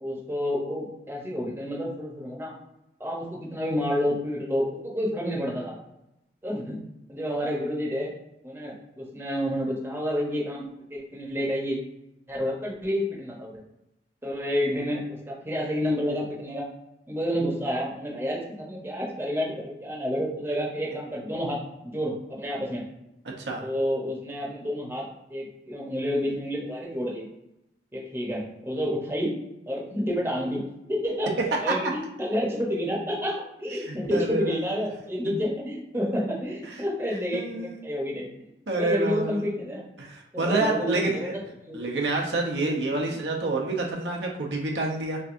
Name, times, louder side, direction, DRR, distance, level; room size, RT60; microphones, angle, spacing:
voice 1, 0.0-2.5 3.0-5.7 6.4-6.8 7.1-8.1 8.4-10.6 10.9-11.8 12.3-13.6 14.2-16.6 17.1-21.6 21.8-22.8 23.6-25.0 25.3-27.3 27.9-29.4 29.7-30.6 30.9-38.3 38.7-39.8 40.3-41.3 41.7-41.9 43.1-43.2, equal, 15° right, -3 dB, 0.9 m, -29 dB
voice 2, 33.8-34.6 35.2-35.4 37.3-37.8 38.7-39.5 40.0-41.4 41.7-45.2, right 2 dB, 75° right, 0 dB, 0.8 m, -28 dB
5.9 x 2.6 x 2.6 m, 0.88 s
head